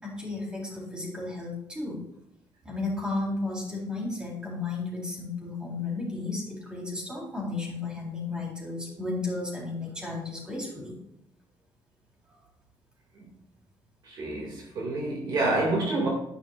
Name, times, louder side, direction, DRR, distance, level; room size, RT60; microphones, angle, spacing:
voice 1, 0.0-2.0 2.6-10.9, left 3 dB, 10° right, -3 dB, 3.8 m, -33 dB
voice 2, 14.0-16.1, right 2 dB, 50° right, -1 dB, 2.1 m, -28 dB
11.0 x 10.5 x 2.5 m, 0.82 s
cardioid pair, 145°, 9 cm